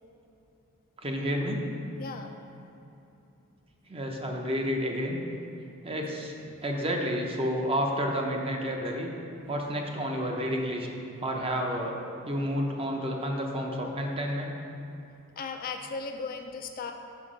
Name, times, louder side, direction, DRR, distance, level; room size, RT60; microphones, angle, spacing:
voice 1, 1.0-1.6 3.9-5.2 5.8-6.3 6.6-9.1 9.5-10.9 11.2-12.0 12.2-14.6, equal, 25° right, 1 dB, 0.6 m, -30 dB
voice 2, 2.0-2.3 6.4-6.6 15.4-16.9, left 4 dB, 40° left, 5 dB, 0.4 m, -37 dB
5.8 x 5.1 x 5.0 m, 2.8 s
head